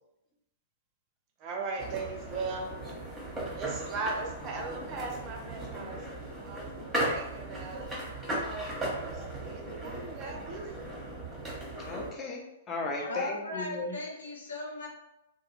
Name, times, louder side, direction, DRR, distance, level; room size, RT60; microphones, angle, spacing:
voice 1, 1.4-2.7 3.5-7.9 9.0-10.8, right 3 dB, 35° right, 2 dB, 0.5 m, -38 dB
sound 1, 1.8-12.1, right 1 dB, 10° right, 0.8 m, -37 dB
voice 2, 11.8-14.0, left 2 dB, 25° left, 0 dB, 0.5 m, -36 dB
voice 3, 12.9-14.9, left 2 dB, 80° left, -2 dB, 0.7 m, -37 dB
2.2 x 2.1 x 3.0 m, 0.92 s
figure-of-eight pair, 110°, 0 cm